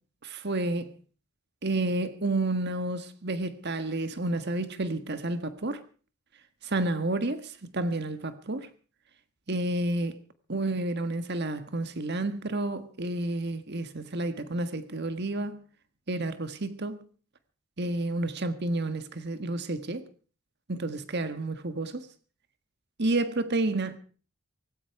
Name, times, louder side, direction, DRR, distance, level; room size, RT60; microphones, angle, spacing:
voice 1, 0.2-0.9 1.6-5.8 6.6-8.7 9.5-10.2 10.5-15.6 16.1-17.1 17.8-20.0 20.7-22.1 23.0-24.0, right 2 dB, 50° right, 1.5 m, -30 dB
18.0 x 16.5 x 4.8 m
head